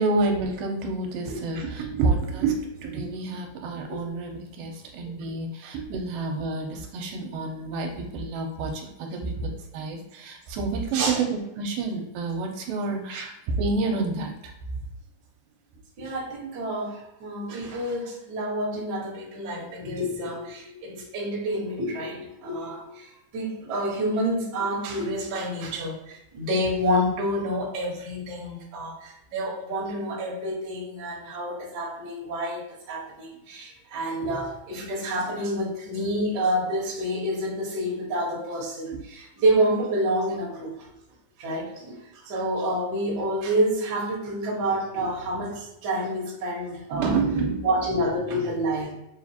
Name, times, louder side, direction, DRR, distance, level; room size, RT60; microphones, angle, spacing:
voice 1, 0.0-14.3 46.9-47.7, right 3 dB, 80° right, 2 dB, 2.3 m, -28 dB
voice 2, 1.2-1.7 3.9-4.1 5.6-5.7 10.9-11.2 13.1-13.3 16.0-40.9 41.4-47.2 47.6-48.9, right 1 dB, 60° right, -4 dB, 1.1 m, -28 dB
6.8 x 2.4 x 2.8 m, 0.88 s
omnidirectional pair, 4.0 m